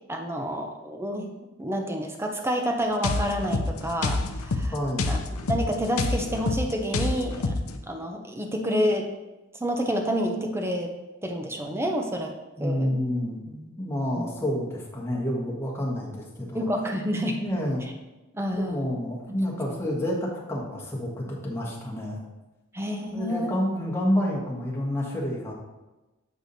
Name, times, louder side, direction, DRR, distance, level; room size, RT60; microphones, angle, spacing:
voice 1, 0.1-1.3 1.6-4.7 5.1-5.2 5.5-7.5 7.9-9.1 9.5-10.9 11.2-12.3 12.6-12.9 14.2-14.3 16.5-17.4 18.3-18.9 19.3-19.4 19.7-19.8 22.7-23.5, equal, 10° right, 3 dB, 0.7 m, -28 dB
sound 1, 3.0-7.8, left 3 dB, 90° left, 0.7 m, -28 dB
voice 2, 4.7-5.1 12.6-16.6 17.4-17.8 18.6-22.2 23.1-25.5, equal, 10° left, -4 dB, 1.5 m, -29 dB
8.2 x 4.8 x 4.1 m, 1.1 s
head